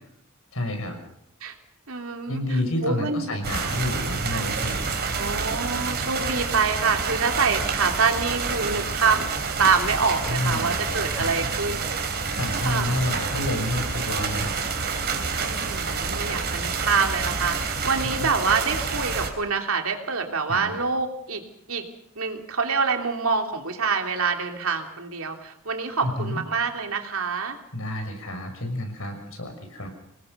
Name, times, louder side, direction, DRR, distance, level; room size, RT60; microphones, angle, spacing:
voice 1, 0.5-1.0 2.3-5.0 10.3-10.7 11.2-11.5 12.3-14.5 15.2-15.3 20.5-20.7 26.0-26.4 27.7-29.9, left 1 dB, 70° left, 5 dB, 6.1 m, -29 dB
voice 2, 1.9-2.4 2.8-3.4 4.3-4.5 5.1-9.3 9.6-12.1 12.6-13.0 15.4-21.4 21.7-21.8 22.2-27.6, right 5 dB, 70° right, 4 dB, 3.1 m, -26 dB
sound 1, 3.4-19.3, right 4 dB, 50° right, 3.7 m, -28 dB
26.0 x 20.0 x 6.8 m, 0.76 s
head